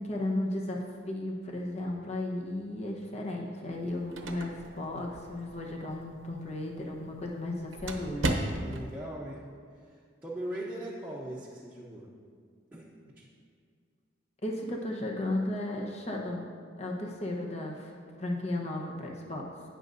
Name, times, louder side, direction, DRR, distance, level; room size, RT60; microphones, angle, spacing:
voice 1, 0.0-8.3 14.4-16.5 16.8-17.9 18.2-19.5, left 1 dB, 35° left, -1 dB, 1.1 m, -34 dB
sound 1, 3.7-9.0, right 2 dB, 85° right, 0.9 m, -37 dB
voice 2, 8.6-9.4 9.7-12.1 12.7-12.9 13.2-13.3, right 1 dB, 10° right, -7 dB, 0.9 m, -40 dB
18.5 x 6.4 x 2.7 m, 2.1 s
head